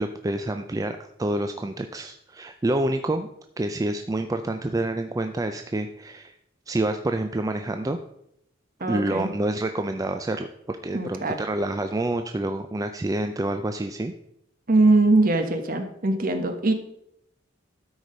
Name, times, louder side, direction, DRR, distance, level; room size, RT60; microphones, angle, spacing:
voice 1, 0.0-3.3 3.6-6.3 6.7-8.0 8.9-14.1, right 1 dB, 20° right, 7 dB, 0.4 m, -28 dB
voice 2, 8.8-9.3 10.9-11.4 14.7-16.7, right 2 dB, 45° right, 7 dB, 1.2 m, -21 dB
12.5 x 4.8 x 5.3 m, 0.77 s
head